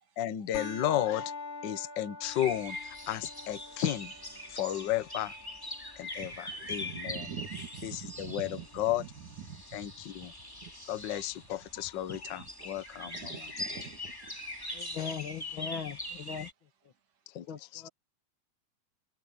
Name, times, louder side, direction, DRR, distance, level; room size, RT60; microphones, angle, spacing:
voice 1, 0.2-1.3 1.6-4.1 4.5-5.3 6.0-7.3 7.8-9.0 9.7-10.3 10.9-13.5 15.0-15.1 17.3-17.9, left 12 dB, 65° left, 1.1 m, -33 dB
sound 1, 0.5-9.5, left 4 dB, 80° left, 5.7 m, -47 dB
sound 2, 2.2-16.5, left 1 dB, 5° left, 3.4 m, -42 dB
voice 2, 6.2-9.1 9.4-9.9 10.2-10.3 10.6-10.7 12.1-12.7 13.1-14.6, right 8 dB, 75° right, 3.8 m, -45 dB
voice 3, 14.7-16.5 17.5-17.9, left 7 dB, 45° left, 2.4 m, -39 dB
omnidirectional pair, 3.5 m